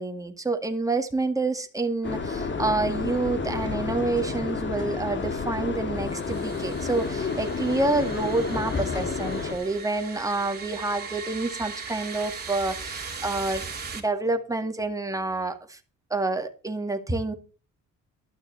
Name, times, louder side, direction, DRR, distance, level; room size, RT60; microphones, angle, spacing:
voice 1, 0.0-13.6 13.9-15.8 16.1-17.3, right 2 dB, 10° right, 2.1 m, -28 dB
sound 1, 2.0-9.5, left 4 dB, 40° left, 1.9 m, -30 dB
sound 2, 6.0-14.0, right 5 dB, 30° right, 3.5 m, -39 dB
12.5 x 6.2 x 7.7 m
cardioid pair, 90°, 30 cm